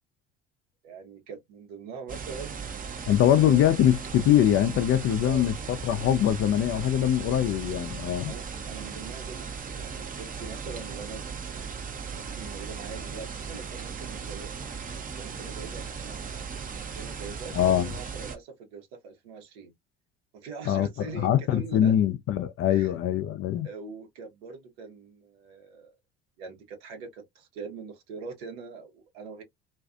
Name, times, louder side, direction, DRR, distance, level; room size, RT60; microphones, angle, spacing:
voice 1, 0.8-3.7 5.1-5.4 8.3-11.2 12.1-16.3 16.9-19.7 20.3-21.9 22.7-23.0 23.6-26.0 26.4-29.4, right 5 dB, 75° right, 1.0 m, -43 dB
sound 1, 2.1-18.4, right 6 dB, 25° right, 0.7 m, -37 dB
voice 2, 3.1-8.3 17.6-17.9 20.7-23.7, left 11 dB, 45° left, 0.5 m, -23 dB
2.5 x 2.4 x 2.4 m
hypercardioid pair, 65°, 31 cm